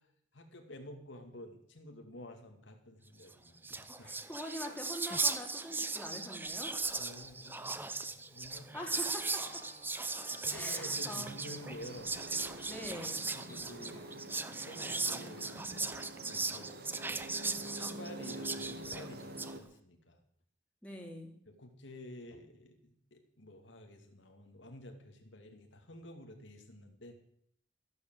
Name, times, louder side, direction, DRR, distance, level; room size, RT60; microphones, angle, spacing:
voice 1, 0.3-4.1 7.0-8.8 10.3-12.2 13.3-14.3 14.6-16.8 17.4-20.2 21.5-27.1, left 1 dB, 75° left, 4 dB, 2.4 m, -51 dB
Whispering, 3.3-3.4 3.6-19.5, right 3 dB, 10° right, 0.7 m, -38 dB
voice 2, 4.0-6.7 8.7-9.6 10.5-11.4 12.7-13.2 20.8-21.3, equal, 5° left, 0 dB, 3.1 m, -44 dB
Organ, 8.7-13.5, left 3 dB, 45° left, 2.5 m, -59 dB
sound 1, 10.8-19.6, right 1 dB, 55° right, 1.6 m, -47 dB
14.0 x 12.0 x 7.7 m, 0.67 s
head